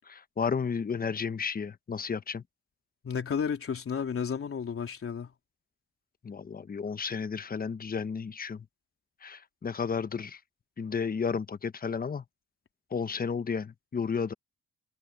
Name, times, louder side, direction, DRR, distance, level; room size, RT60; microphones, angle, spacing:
voice 1, 0.1-2.4 6.2-8.6 9.2-10.4 10.8-12.2 12.9-14.3, left 6 dB, 30° left, 1.1 m, -32 dB
voice 2, 3.0-5.3, left 7 dB, 45° left, 3.5 m, -32 dB
cardioid pair, 90°, 30 cm